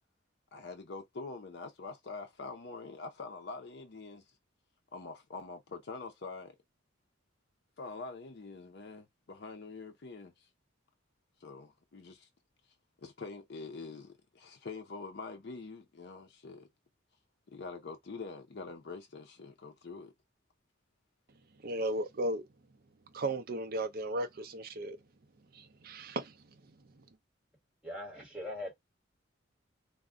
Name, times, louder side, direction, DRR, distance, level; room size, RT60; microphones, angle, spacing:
voice 1, 0.5-4.3 4.9-6.6 7.8-10.5 11.4-12.3 13.0-16.7 17.5-20.1, left 4 dB, 55° left, 0.5 m, -45 dB
voice 2, 21.6-22.4 23.1-25.0 25.5-26.4 27.0-27.1, right 1 dB, 50° right, 0.5 m, -35 dB
voice 3, 27.8-28.7, left 1 dB, 5° right, 1.4 m, -40 dB
2.4 x 2.1 x 3.5 m
head